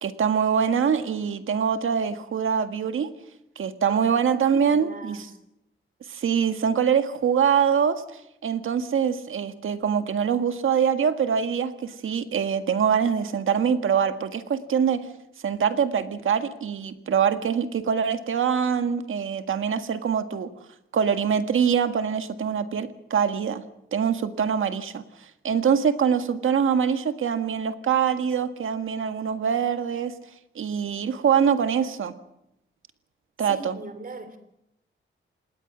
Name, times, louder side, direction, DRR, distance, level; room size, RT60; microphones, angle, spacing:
voice 1, 0.0-3.1 3.5-5.2 6.1-15.1 15.4-20.5 20.9-23.6 23.9-25.0 25.4-30.1 30.5-32.1 33.4-33.8, right 7 dB, 85° right, 8 dB, 1.8 m, -24 dB
voice 2, 3.9-5.3 33.4-34.4, right 3 dB, 45° right, 10 dB, 3.2 m, -40 dB
27.0 x 19.5 x 6.2 m, 0.80 s
wide cardioid pair, 150°, 20 cm